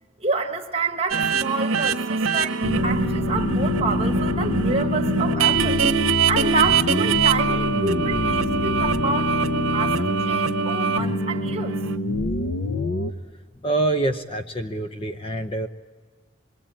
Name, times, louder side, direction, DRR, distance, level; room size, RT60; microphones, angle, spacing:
voice 1, 0.2-5.8 6.3-11.8, right 3 dB, 30° right, 4 dB, 1.4 m, -28 dB
sound 1, 1.1-12.0, right 5 dB, 90° right, 1.0 m, -24 dB
sound 2, 2.6-13.1, left 1 dB, 65° left, 0.9 m, -26 dB
voice 2, 13.6-15.7, right 2 dB, 25° left, 8 dB, 0.7 m, -25 dB
26.0 x 21.0 x 8.9 m, 1.4 s
head